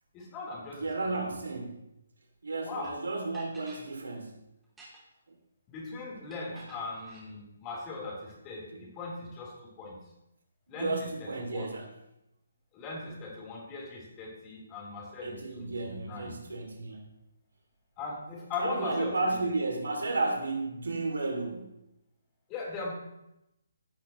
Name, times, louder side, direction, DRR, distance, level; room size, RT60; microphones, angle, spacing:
voice 1, 0.1-0.9 1.1-1.3 2.6-3.0 5.7-10.0 10.7-11.7 12.7-16.4 18.0-19.4 22.5-22.9, left 3 dB, 20° left, -2 dB, 3.9 m, -39 dB
voice 2, 0.7-1.9 2.4-4.4 6.5-6.9 8.7-8.9 10.7-11.9 15.2-17.1 18.6-21.8, right 3 dB, 80° right, 2 dB, 2.7 m, -33 dB
sound 1, 2.8-2.9 3.3-3.9 4.6-5.2 6.3-7.3, right 1 dB, 10° right, 2.8 m, -51 dB
15.5 x 8.4 x 3.1 m, 0.85 s
hypercardioid pair, 150°, 0 cm